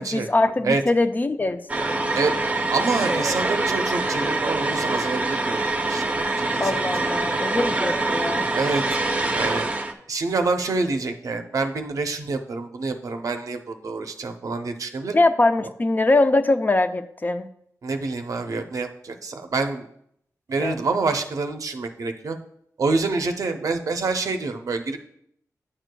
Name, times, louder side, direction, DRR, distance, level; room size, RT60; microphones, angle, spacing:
voice 1, 0.0-1.6 6.6-8.5 15.1-17.5 20.6-20.8, left 2 dB, 30° left, 9 dB, 0.4 m, -22 dB
sound 1, 1.7-9.9, right 2 dB, 20° right, 0.6 m, -24 dB
voice 2, 2.7-5.6 5.9-7.4 8.5-8.8 9.3-9.7 10.1-15.1 17.8-19.9 20.5-22.4 22.8-25.0, right 3 dB, 65° right, 6 dB, 0.6 m, -27 dB
9.8 x 6.4 x 2.2 m, 0.72 s
wide cardioid pair, 95°, 6 cm